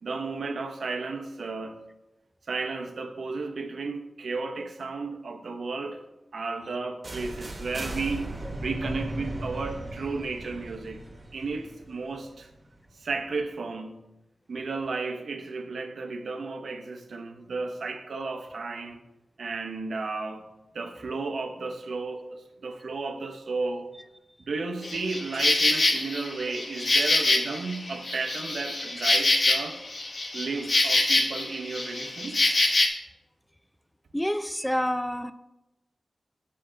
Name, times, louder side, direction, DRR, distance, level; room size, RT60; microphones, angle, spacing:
voice 1, 0.0-1.8 2.5-6.0 6.3-11.0 11.3-12.5 13.0-14.0 14.5-19.0 19.4-20.4 20.7-23.9 24.4-29.8 30.3-32.5, right 3 dB, 75° right, 0.7 m, -33 dB
sound 1, 7.0-12.9, right 1 dB, 40° right, 1.2 m, -37 dB
Insect, 24.8-32.9, left 2 dB, 45° left, 1.0 m, -25 dB
voice 2, 34.1-35.3, equal, 5° left, 0.3 m, -28 dB
6.6 x 6.2 x 3.8 m
wide cardioid pair, 100°, 0 cm